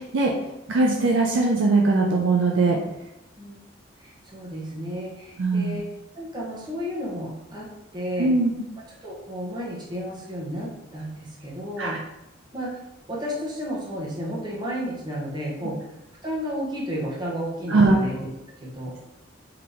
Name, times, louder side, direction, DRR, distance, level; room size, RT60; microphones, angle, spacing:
voice 1, 0.7-2.8 5.4-5.8 8.2-8.5 11.8-12.0 17.7-18.0, right 3 dB, 65° right, -1 dB, 0.5 m, -20 dB
voice 2, 4.0-5.9 6.1-7.7 7.9-8.3 9.0-12.0 12.5-12.8 13.1-15.8 16.2-18.3 18.6-19.0, equal, 25° right, -5 dB, 1.0 m, -32 dB
3.9 x 2.9 x 3.4 m, 0.91 s
head